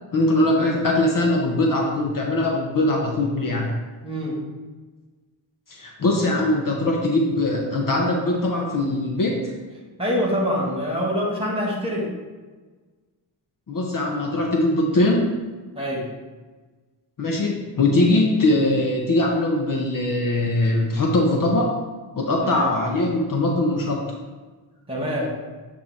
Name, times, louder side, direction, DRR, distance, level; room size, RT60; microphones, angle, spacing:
voice 1, 0.1-3.7 5.7-9.5 13.7-15.4 17.2-21.7 22.2-24.2, left 2 dB, 45° left, 0 dB, 0.9 m, -21 dB
voice 2, 4.0-4.4 10.0-12.1 15.8-16.1 22.4-22.7 24.9-25.3, equal, 10° right, -3 dB, 1.9 m, -25 dB
8.3 x 2.8 x 4.3 m, 1.3 s
cardioid pair, 80°, 46 cm